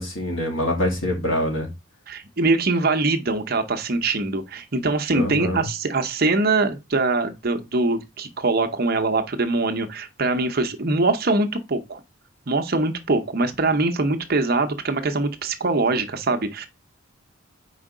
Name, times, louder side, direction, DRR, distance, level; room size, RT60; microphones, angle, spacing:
voice 1, 0.0-1.7 5.1-5.7, left 1 dB, 70° left, 2.4 m, -25 dB
voice 2, 2.1-12.0 12.5-16.7, right 3 dB, 45° right, 0.8 m, -23 dB
4.9 x 4.5 x 4.9 m
head